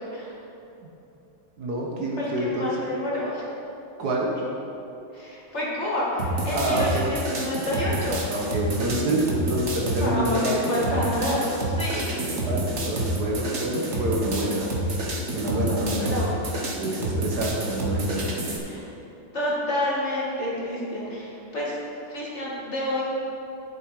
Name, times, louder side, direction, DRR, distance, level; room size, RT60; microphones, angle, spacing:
voice 1, 1.6-2.8 4.0-4.4 6.5-7.1 8.3-10.7 12.1-14.7 15.3-16.3 16.8-18.3, right 1 dB, 60° right, -2 dB, 1.6 m, -27 dB
voice 2, 2.2-3.5 5.1-8.2 9.9-12.0 13.9-14.0 16.0-16.3 18.6-18.9 19.3-21.7 22.1-23.0, left 1 dB, 35° left, -6 dB, 2.2 m, -28 dB
sound 1, 6.2-18.6, right 1 dB, 40° right, 1.5 m, -28 dB
11.0 x 8.0 x 4.8 m, 2.9 s
omnidirectional pair, 2.1 m